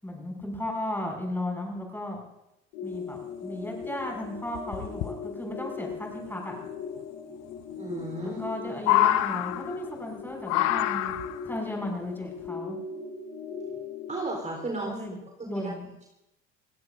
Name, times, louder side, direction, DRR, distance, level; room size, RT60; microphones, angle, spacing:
voice 1, 0.0-2.2 2.8-6.6 8.2-11.1 11.4-12.8 14.8-15.2 15.4-15.9, left 1 dB, 5° left, 0 dB, 6.5 m, -35 dB
sound 1, 2.7-14.6, left 5 dB, 60° left, 6.0 m, -39 dB
sound 2, 3.5-3.6 3.8-3.9 4.5-5.1 6.7-6.8 8.0-8.5 8.8-10.0 10.5-11.5 12.5-12.6, left 13 dB, 45° left, 0.9 m, -26 dB
voice 2, 7.8-8.4 14.1-15.0 15.4-15.7, right 2 dB, 20° right, -1 dB, 4.1 m, -34 dB
29.5 x 17.0 x 2.7 m, 0.88 s
figure-of-eight pair, 70°, 37 cm